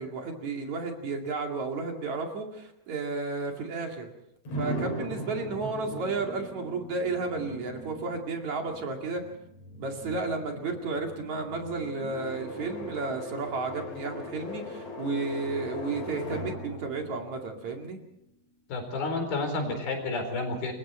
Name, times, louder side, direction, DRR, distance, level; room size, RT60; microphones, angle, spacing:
voice 1, 0.0-4.1 4.6-9.2 9.8-18.0, right 3 dB, 55° right, 2 dB, 3.5 m, -32 dB
sound 1, 4.4-18.3, equal, 45° left, 4.8 m, -40 dB
voice 2, 18.7-20.7, left 3 dB, 80° left, 4 dB, 6.2 m, -30 dB
27.5 x 22.5 x 4.4 m, 0.77 s
omnidirectional pair, 4.2 m